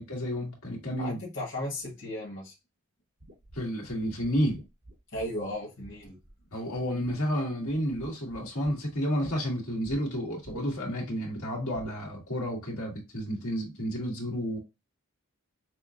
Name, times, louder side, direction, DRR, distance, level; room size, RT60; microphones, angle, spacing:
voice 1, 0.0-1.2 3.5-4.6 6.5-14.6, equal, 85° left, 2.0 m, -31 dB
voice 2, 1.0-2.5 5.1-6.2, left 1 dB, 55° left, 1.5 m, -35 dB
sound 1, 3.2-6.4 6.8-7.4 7.7-9.4 9.8-10.0 10.4-11.0 11.7-12.0, right 1 dB, 45° right, 1.3 m, -49 dB
6.1 x 2.4 x 2.5 m
head